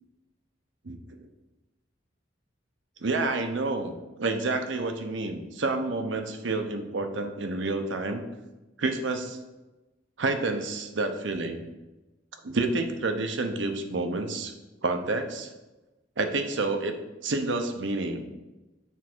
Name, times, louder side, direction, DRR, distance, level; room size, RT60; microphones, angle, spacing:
voice 1, 3.0-8.2 8.8-9.4 10.2-11.7 12.4-14.5 14.8-15.5 16.2-16.9 17.2-18.3, right 3 dB, 80° right, 6 dB, 0.8 m, -29 dB
7.2 x 3.5 x 6.1 m, 1.1 s
head